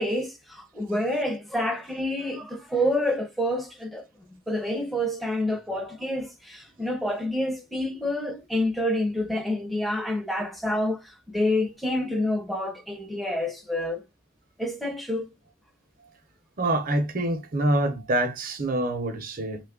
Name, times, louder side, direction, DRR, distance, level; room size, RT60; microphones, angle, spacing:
voice 1, 0.0-4.0 4.5-11.0 11.3-14.0 14.6-15.3, left 1 dB, ahead, 0.6 m, -28 dB
voice 2, 16.6-19.6, right 1 dB, 45° right, 0.7 m, -26 dB
3.1 x 2.3 x 3.5 m
head